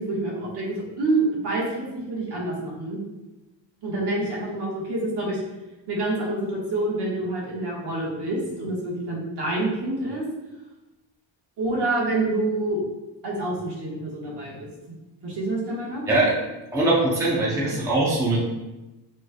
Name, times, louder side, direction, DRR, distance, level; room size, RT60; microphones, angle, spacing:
voice 1, 0.0-3.0 3.8-5.4 5.9-10.2 11.6-12.8 13.2-14.7 15.2-16.0, right 2 dB, 60° right, -4 dB, 1.4 m, -27 dB
voice 2, 16.7-18.4, right 2 dB, 5° right, -5 dB, 0.6 m, -21 dB
6.2 x 3.2 x 2.3 m, 1.1 s
cardioid pair, 175°, 46 cm